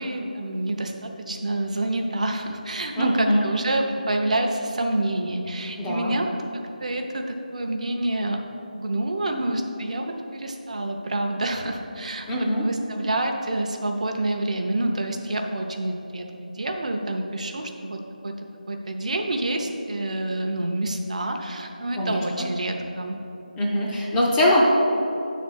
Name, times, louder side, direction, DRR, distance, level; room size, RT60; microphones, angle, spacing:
voice 1, 0.0-8.4 8.7-16.3 16.5-18.3 18.7-23.2, right 1 dB, 50° right, 4 dB, 0.7 m, -28 dB
voice 2, 3.0-3.4 5.8-6.2 12.3-12.6 22.0-22.5 23.6-24.6, left 1 dB, 10° left, -6 dB, 0.4 m, -23 dB
6.4 x 4.1 x 6.2 m, 2.9 s
figure-of-eight pair, 165°, 5 cm